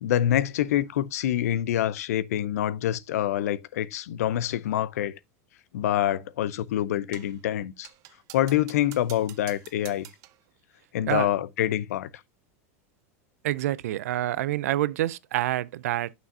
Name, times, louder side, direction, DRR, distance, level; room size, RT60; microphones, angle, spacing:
voice 1, 0.0-5.2 5.7-7.9 8.3-10.1 10.9-12.1, left 12 dB, 85° left, 0.7 m, -26 dB
sound 1, 7.1-7.4 7.8-10.4, right 16 dB, 45° right, 0.7 m, -48 dB
voice 2, 13.4-16.1, right 14 dB, 85° right, 0.5 m, -27 dB
9.4 x 6.2 x 2.7 m
supercardioid pair, 140°, 8 cm